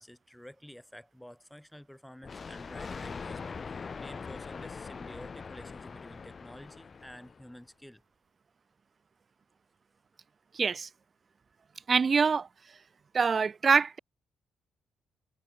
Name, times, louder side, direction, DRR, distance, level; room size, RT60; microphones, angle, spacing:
voice 1, 0.0-8.0, equal, 5° left, 6.3 m, -50 dB
Thunder, 2.2-7.6, left 5 dB, 35° left, 0.6 m, -42 dB
voice 2, 10.5-10.9 11.9-12.5 13.1-14.0, right 5 dB, 40° right, 0.6 m, -25 dB
cardioid pair, 90°, 0 cm